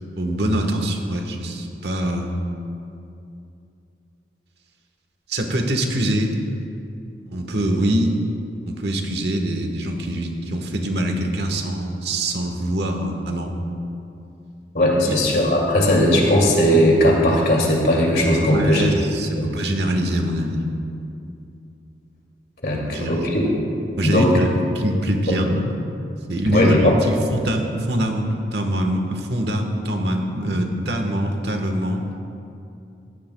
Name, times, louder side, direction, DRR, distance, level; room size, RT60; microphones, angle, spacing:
voice 1, 0.2-2.3 5.3-6.3 7.3-8.1 8.6-13.5 15.0-15.2 18.4-20.6 22.7-23.3 24.0-25.7 26.3-32.2, right 1 dB, 75° right, 3 dB, 1.3 m, -24 dB
voice 2, 14.7-18.8 19.3-19.5 22.6-23.4 24.0-24.3 26.5-26.9, left 1 dB, 60° left, -2 dB, 2.5 m, -18 dB
17.5 x 14.0 x 2.3 m, 2.7 s
head